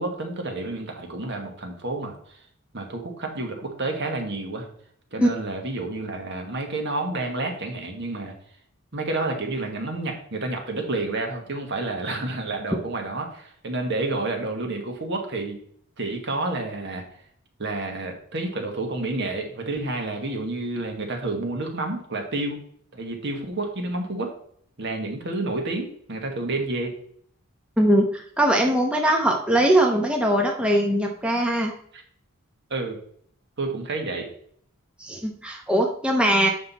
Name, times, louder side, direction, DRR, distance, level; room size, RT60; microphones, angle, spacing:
voice 1, 0.0-2.4 2.7-4.7 5.1-8.3 8.9-15.6 16.0-17.0 17.6-22.6 22.9-24.3 24.8-26.9 31.9-32.0 32.7-33.0 33.6-34.3, right 2 dB, 55° right, 3 dB, 1.4 m, -29 dB
voice 2, 27.8-31.7 35.0-36.5, right 1 dB, 5° right, 0 dB, 0.8 m, -21 dB
7.7 x 5.7 x 4.0 m, 0.62 s
head